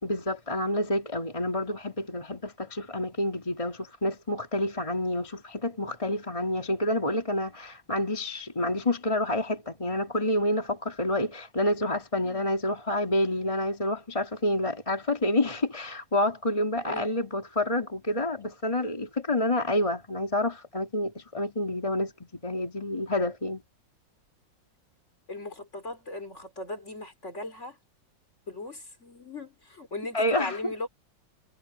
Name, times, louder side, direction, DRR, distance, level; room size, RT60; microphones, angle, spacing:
voice 1, 0.0-23.6 30.1-30.7, left 1 dB, 15° left, 2.2 m, -28 dB
voice 2, 25.3-27.8 28.5-30.9, left 2 dB, 35° left, 4.3 m, -38 dB
omnidirectional pair, 2.1 m